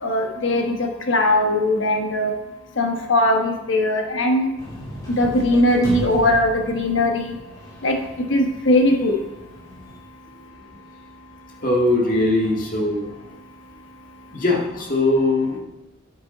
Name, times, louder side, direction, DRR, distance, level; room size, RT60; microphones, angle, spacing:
voice 1, 0.0-2.3 2.8-4.5 5.1-7.4 7.8-8.0 8.3-9.1, left 1 dB, 70° left, 2 dB, 1.3 m, -20 dB
sound 1, 4.6-10.0, left 1 dB, 20° left, 3.4 m, -36 dB
voice 2, 11.6-13.1 14.3-15.6, left 2 dB, 45° left, -2 dB, 1.9 m, -20 dB
8.8 x 8.5 x 4.0 m, 0.98 s
head